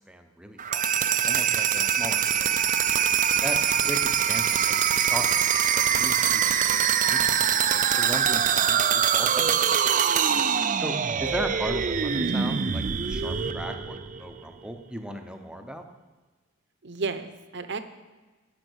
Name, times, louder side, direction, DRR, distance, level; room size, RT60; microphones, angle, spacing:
voice 1, 0.1-0.8 1.2-2.5 3.4-5.5 5.7-9.6 10.8-10.9 11.2-15.8, equal, 5° right, 5 dB, 0.9 m, -37 dB
sound 1, 0.6-14.4, right 8 dB, 40° right, 0.5 m, -24 dB
voice 2, 10.3-10.8 16.8-17.8, right 4 dB, 60° right, 10 dB, 0.9 m, -34 dB
17.5 x 5.9 x 6.3 m, 1.3 s
head